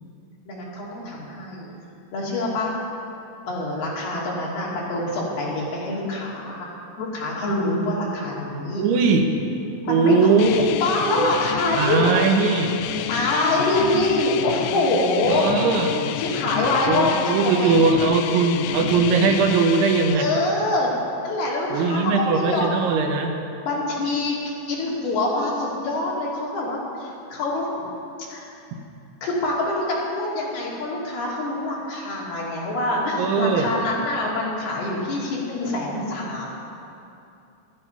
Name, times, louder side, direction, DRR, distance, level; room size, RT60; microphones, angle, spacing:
voice 1, 0.5-1.7 2.1-2.8 3.5-6.7 7.0-8.8 9.8-12.2 13.1-15.6 16.2-17.8 20.2-20.9 21.2-22.7 23.6-27.9 28.2-28.5 29.2-36.5, left 2 dB, 60° left, -5 dB, 4.4 m, -25 dB
voice 2, 8.8-9.3 9.9-10.7 11.8-12.8 15.3-15.9 16.9-20.3 21.7-23.4 33.2-33.7, right 4 dB, 80° right, 3 dB, 3.5 m, -20 dB
sound 1, 10.4-20.2, left 11 dB, 85° left, 2.9 m, -29 dB
17.0 x 13.5 x 5.7 m, 2.7 s
omnidirectional pair, 5.4 m